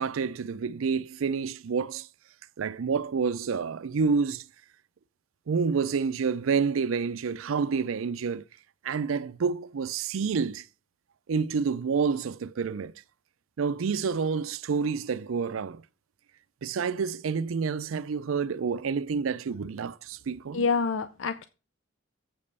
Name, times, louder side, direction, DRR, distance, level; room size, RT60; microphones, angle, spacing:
voice 1, 0.0-2.1 2.6-4.4 5.5-8.4 8.8-10.7 11.3-12.9 13.6-15.8 16.6-20.7, right 5 dB, 80° right, 0.4 m, -28 dB
voice 2, 20.5-21.4, left 5 dB, 70° left, 0.5 m, -27 dB
7.6 x 5.2 x 6.7 m
head